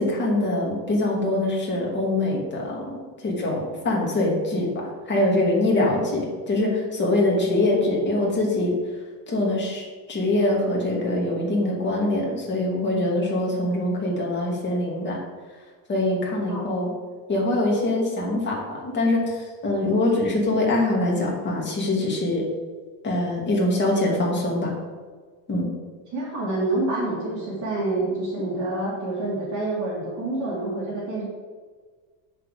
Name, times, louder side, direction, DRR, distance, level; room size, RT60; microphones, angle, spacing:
voice 1, 0.0-4.7 5.1-8.7 9.3-15.2 15.9-16.9 17.3-22.4 23.0-24.7 25.5-25.7, left 1 dB, 25° left, -2 dB, 2.3 m, -23 dB
voice 2, 26.1-31.2, right 2 dB, 40° right, -5 dB, 2.6 m, -27 dB
7.5 x 6.8 x 5.0 m, 1.5 s
cardioid pair, 155°, 46 cm